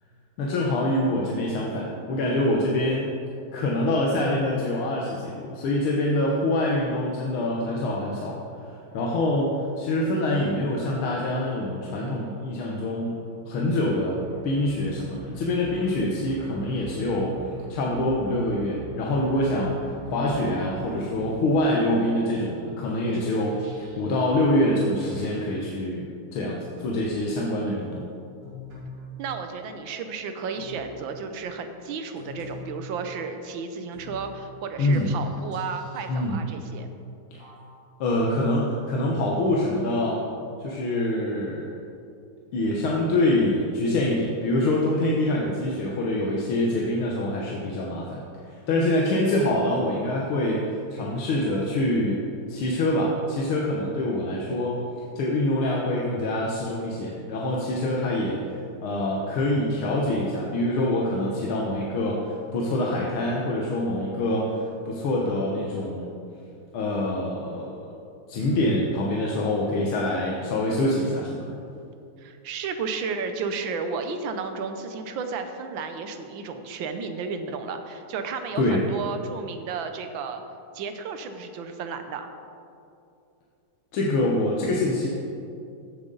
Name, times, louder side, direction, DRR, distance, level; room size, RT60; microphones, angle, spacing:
voice 1, 0.4-3.1 3.5-8.4 8.6-13.2 13.5-17.3 17.7-26.0 26.3-28.0 34.8-35.1 36.1-36.4 37.3-37.4 38.0-40.2 40.6-41.7 42.5-48.2 48.5-52.2 52.5-54.8 55.2-64.6 64.9-66.1 66.7-67.8 68.3-71.6 78.6-78.8 83.9-85.1, left 1 dB, 75° left, -2 dB, 1.8 m, -25 dB
sound 1, 14.1-21.6, equal, 15° right, 1.8 m, -41 dB
sound 2, 23.1-24.3 25.0-25.8 26.8-27.2 28.4-29.1 30.6-31.0 32.2-32.9 33.9-34.3 34.9-36.3 37.4-38.1 38.9-39.0 40.0-40.2 40.9-41.0, left 3 dB, 90° right, 3.4 m, -43 dB
voice 2, 29.2-36.9 72.2-80.4 80.7-82.3, right 5 dB, 70° right, 7 dB, 1.4 m, -33 dB
15.0 x 7.4 x 3.9 m, 2.6 s
omnidirectional pair, 2.4 m